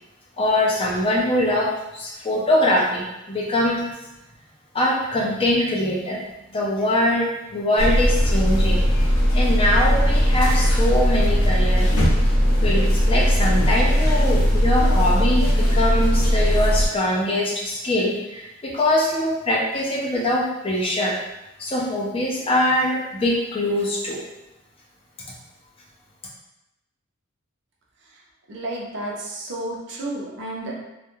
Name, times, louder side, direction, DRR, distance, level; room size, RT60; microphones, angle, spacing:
voice 1, 0.4-3.8 4.7-6.2 6.5-8.8 9.3-11.9 12.6-21.2 21.6-24.2, left 1 dB, 25° left, -3 dB, 0.4 m, -23 dB
sound 1, 7.8-16.9, equal, 80° left, 0.6 m, -18 dB
voice 2, 28.5-30.7, right 1 dB, 55° right, -3 dB, 0.5 m, -31 dB
2.3 x 2.1 x 2.9 m, 0.95 s
head